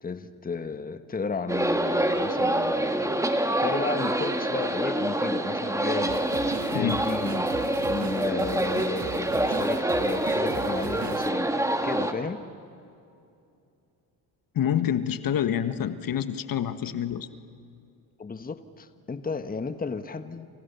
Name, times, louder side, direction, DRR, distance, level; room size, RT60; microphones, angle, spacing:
voice 1, 0.0-3.3 3.6-6.2 6.7-7.5 7.8-12.5 18.2-20.5, left 4 dB, 20° left, 10 dB, 1.3 m, -33 dB
sound 1, 1.5-12.1, right 1 dB, 5° right, 2.4 m, -26 dB
sound 2, 6.1-11.3, right 6 dB, 40° right, 2.0 m, -39 dB
voice 2, 14.5-17.3, left 9 dB, 50° left, 11 dB, 1.5 m, -27 dB
29.0 x 28.5 x 7.0 m, 2.5 s
supercardioid pair, 75°, 45 cm